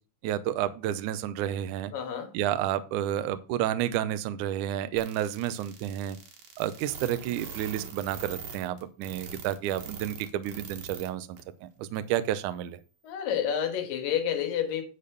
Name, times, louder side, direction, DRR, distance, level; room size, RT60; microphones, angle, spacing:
voice 1, 0.2-1.9 2.3-6.2 6.6-12.8, right 11 dB, 80° right, 1.9 m, -30 dB
voice 2, 1.9-2.3 13.0-14.8, left 9 dB, 70° left, 3.0 m, -29 dB
sound 1, 5.0-11.1 11.4-11.5 12.0-12.1, right 6 dB, 60° right, 2.6 m, -42 dB
10.5 x 4.2 x 6.7 m
omnidirectional pair, 4.2 m